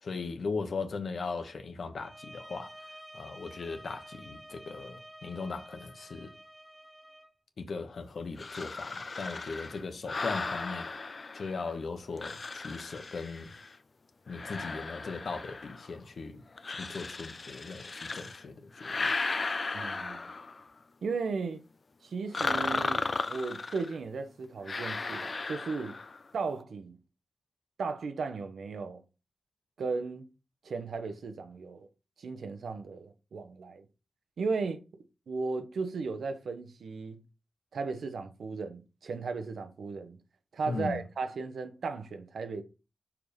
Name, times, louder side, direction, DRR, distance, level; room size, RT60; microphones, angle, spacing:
voice 1, 0.0-2.7 3.1-6.3 7.6-10.9 11.3-13.5 14.3-19.1 40.7-41.0, left 4 dB, 60° left, 1.1 m, -38 dB
sound 1, 2.0-7.3, right 1 dB, ahead, 0.8 m, -50 dB
sound 2, 8.4-11.7 12.2-13.7 14.3-16.0 16.6-18.4 18.7-20.7 22.3-24.0 24.7-26.2, left 3 dB, 40° left, 0.5 m, -35 dB
voice 2, 19.7-20.2 21.0-21.6 22.0-26.0 26.3-27.0 27.8-29.0 29.8-30.2 30.6-31.9 32.2-33.8 34.4-34.8 35.3-37.2 37.7-40.2 40.5-42.6, right 4 dB, 85° right, 1.0 m, -35 dB
5.9 x 4.8 x 5.2 m
wide cardioid pair, 145°, 0 cm